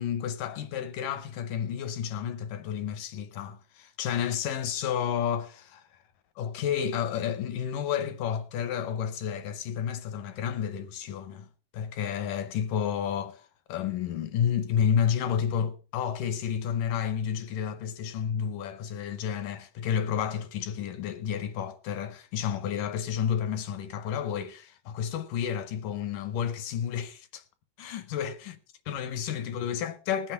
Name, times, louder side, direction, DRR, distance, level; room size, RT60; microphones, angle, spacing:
voice 1, 0.0-6.0 6.4-11.5 11.7-27.4 27.8-28.6 28.9-30.3, left 8 dB, 75° left, 2.0 m, -31 dB
20.0 x 7.6 x 4.4 m
omnidirectional pair, 4.6 m